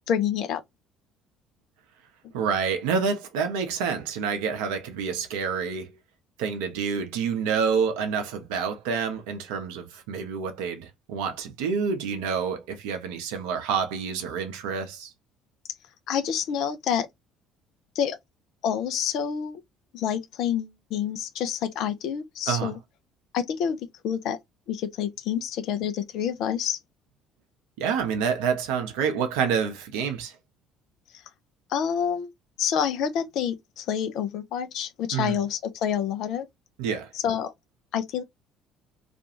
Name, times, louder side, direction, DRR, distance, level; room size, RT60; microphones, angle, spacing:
voice 1, 0.1-0.6 16.1-17.1 18.0-18.2 18.6-19.6 19.9-22.8 23.3-23.8 24.0-24.4 24.7-26.8 31.7-32.3 32.6-36.5 37.2-37.5 37.9-38.2, left 8 dB, 55° left, 0.4 m, -28 dB
voice 2, 2.3-6.0 6.4-15.1 22.5-22.7 27.8-30.4 35.1-35.4 36.8-37.1, right 6 dB, 65° right, 0.6 m, -28 dB
2.5 x 2.3 x 2.7 m
figure-of-eight pair, 55°, 0 cm